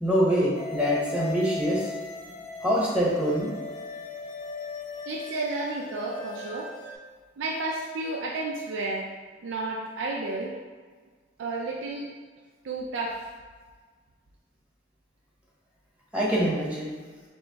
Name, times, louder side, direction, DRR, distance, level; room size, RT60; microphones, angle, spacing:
voice 1, 0.0-1.9 2.6-3.5 16.1-16.9, equal, 5° right, -6 dB, 1.0 m, -24 dB
sound 1, 0.5-6.9, left 4 dB, 40° left, 0.5 m, -38 dB
voice 2, 5.1-6.7 7.4-9.1 9.4-10.6 11.4-12.1 12.6-13.2, right 2 dB, 85° right, -2 dB, 0.4 m, -31 dB
3.5 x 3.0 x 3.9 m, 1.5 s
head